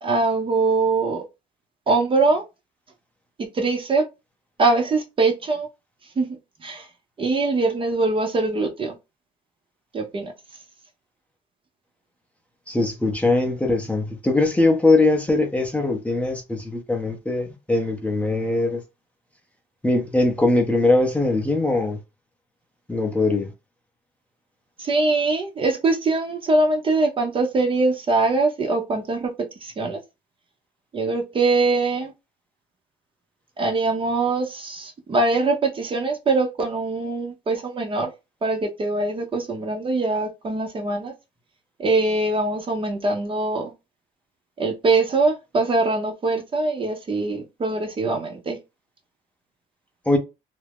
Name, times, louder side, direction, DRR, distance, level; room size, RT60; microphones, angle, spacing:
voice 1, 0.0-1.2 1.9-2.4 3.4-4.1 4.6-5.7 6.2-6.9 7.2-9.0 9.9-10.3 24.8-29.3 29.6-30.0 30.9-32.1 33.6-38.1 38.4-41.1 41.8-43.7 44.6-48.6, right 3 dB, 30° right, 0.7 m, -22 dB
voice 2, 12.7-18.8 19.8-22.0 22.9-23.5 50.1-50.2, left 2 dB, 10° left, 0.6 m, -21 dB
2.4 x 2.0 x 3.4 m
cardioid pair, 110°, 17 cm